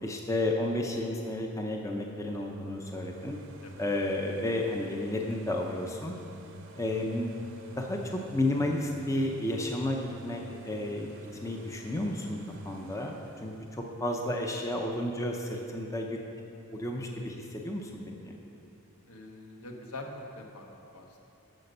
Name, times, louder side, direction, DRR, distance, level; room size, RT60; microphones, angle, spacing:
voice 1, 0.0-3.4 3.8-6.2 6.8-7.3 7.8-11.1 11.4-12.4 12.6-16.2 16.7-17.9 18.2-18.3, left 1 dB, 15° left, 1 dB, 0.6 m, -32 dB
sound 1, 2.4-16.1 16.6-16.7, right 1 dB, 55° right, 0.8 m, -49 dB
voice 2, 19.1-21.2, left 2 dB, 75° left, 2 dB, 1.2 m, -44 dB
12.5 x 5.2 x 6.6 m, 2.8 s
head